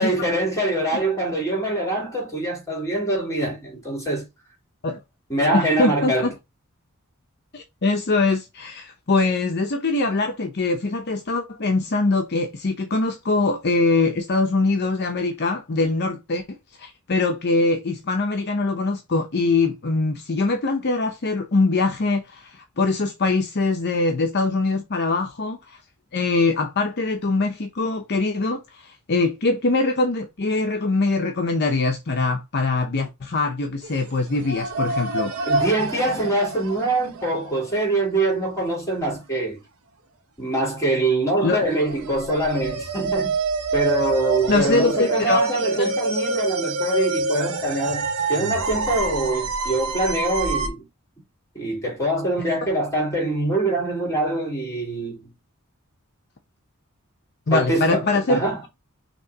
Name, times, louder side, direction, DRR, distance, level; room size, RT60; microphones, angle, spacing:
voice 1, 0.0-4.2 5.3-6.3 35.5-39.6 40.4-43.4 43.7-50.8 51.5-55.3 57.5-58.0 58.3-58.6, right 1 dB, 15° left, 3.4 m, -24 dB
voice 2, 5.5-6.3 7.5-25.8 26.1-35.3 41.4-41.6 44.5-45.5 45.8-45.9 57.5-58.4, left 3 dB, 50° left, 0.7 m, -23 dB
sound 1, 33.8-34.0 34.3-37.8 41.7-50.7, right 3 dB, 80° right, 1.0 m, -27 dB
6.1 x 3.0 x 2.7 m
head